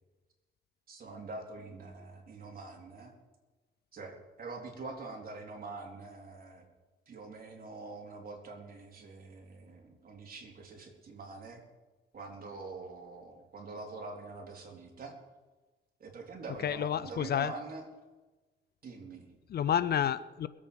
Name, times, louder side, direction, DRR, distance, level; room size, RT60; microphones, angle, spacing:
voice 1, 0.9-3.1 3.9-6.7 7.1-11.6 12.1-15.2 16.0-17.9 18.8-19.3, right 3 dB, 45° right, 0 dB, 3.8 m, -45 dB
voice 2, 16.6-17.5 19.5-20.5, left 9 dB, 55° left, 16 dB, 0.6 m, -30 dB
21.5 x 8.6 x 5.3 m, 1.2 s
cardioid pair, 90°, 20 cm